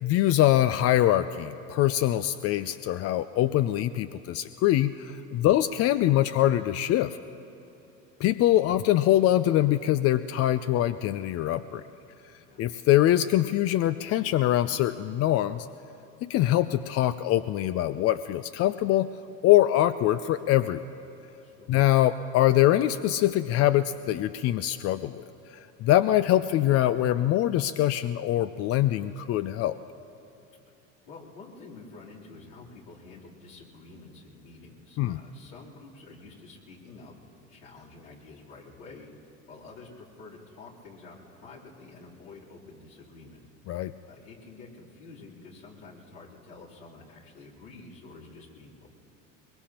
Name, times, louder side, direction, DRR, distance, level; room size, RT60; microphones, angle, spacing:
voice 1, 0.0-7.2 8.2-11.8 12.6-15.7 16.2-19.1 19.4-20.8 21.7-25.2 25.5-29.8 35.0-35.2 43.7-43.9, left 13 dB, 40° left, 12 dB, 0.4 m, -23 dB
voice 2, 21.4-21.7 31.1-39.1 39.5-43.4 44.1-48.9, left 3 dB, 75° left, -6 dB, 3.5 m, -48 dB
22.5 x 22.0 x 2.9 m, 2.9 s
hypercardioid pair, 75°, 39 cm